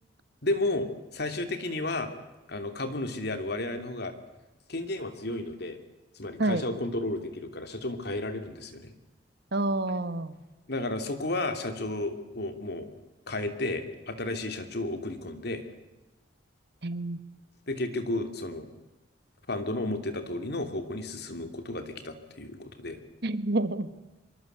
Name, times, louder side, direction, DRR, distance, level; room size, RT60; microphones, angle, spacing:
voice 1, 0.4-2.1 2.5-4.1 4.7-5.8 6.1-8.9 10.7-12.9 13.3-15.6 17.7-18.7 19.5-23.0, left 2 dB, 60° left, 8 dB, 2.9 m, -32 dB
voice 2, 9.5-10.4 16.8-17.2 23.2-23.9, right 2 dB, 65° right, 12 dB, 1.6 m, -28 dB
25.0 x 23.0 x 8.1 m, 1.1 s
head